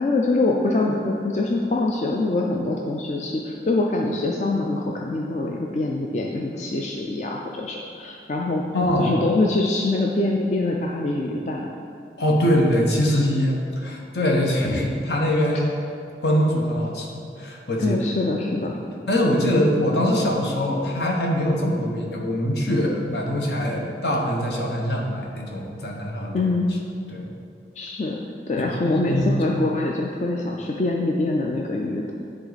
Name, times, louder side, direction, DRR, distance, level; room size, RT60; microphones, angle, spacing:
voice 1, 0.0-8.6 9.0-11.7 15.5-15.6 17.8-18.7 26.3-26.7 27.8-28.2 28.5-32.1, left 2 dB, 40° left, -1 dB, 0.4 m, -24 dB
voice 2, 8.7-9.2 12.2-15.7 16.2-18.0 19.1-26.5 27.1-27.2 28.6-29.6, equal, 70° left, -1 dB, 1.1 m, -23 dB
9.8 x 3.8 x 4.1 m, 2.6 s
head